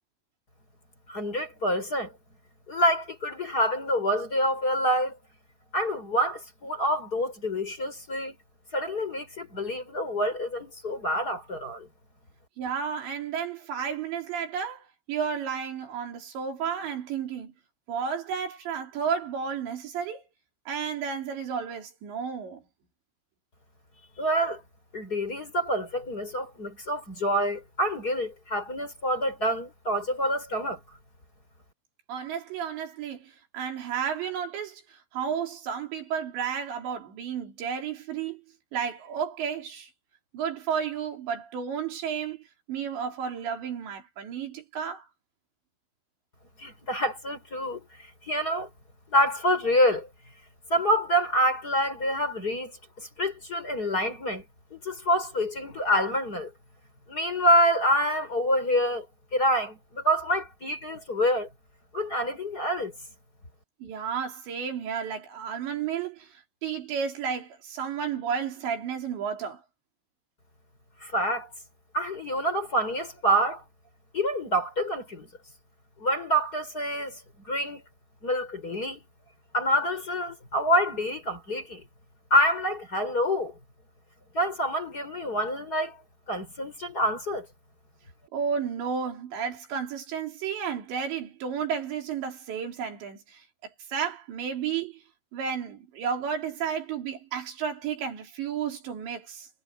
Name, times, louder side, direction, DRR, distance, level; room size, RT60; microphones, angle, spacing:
voice 1, 1.1-2.1 2.7-5.2 5.7-8.3 8.7-11.9 24.2-24.6 24.9-30.8 46.6-48.7 49.1-50.1 50.7-52.7 53.0-54.4 54.7-56.5 57.1-59.1 59.3-61.5 61.9-62.9 71.0-71.5 71.9-73.6 74.1-75.3 76.0-77.2 77.4-77.8 78.2-79.0 79.5-81.8 82.3-83.5 84.3-86.0 86.3-87.5, equal, 20° left, 5.1 m, -27 dB
voice 2, 12.6-17.5 17.9-20.2 20.7-22.6 32.1-38.4 38.7-39.9 40.3-45.1 63.8-69.6 88.3-95.0 95.3-99.5, right 7 dB, 85° right, 6.2 m, -32 dB
omnidirectional pair, 5.0 m